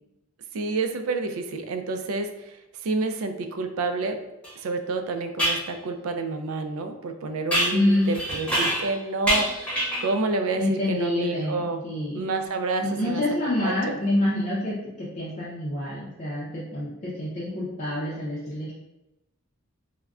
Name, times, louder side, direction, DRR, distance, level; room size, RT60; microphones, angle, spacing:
voice 1, 0.5-2.6 2.8-4.2 4.6-11.8 12.1-13.2 13.6-14.0, right 3 dB, 75° right, 6 dB, 0.3 m, -29 dB
sound 1, 4.4-4.5 5.4-5.7 7.5-9.0 9.3-10.1, right 1 dB, 5° left, 0.9 m, -25 dB
voice 2, 7.7-8.1 10.6-12.2 12.8-18.7, left 1 dB, 35° left, -7 dB, 0.5 m, -27 dB
3.5 x 2.1 x 2.3 m, 0.95 s
head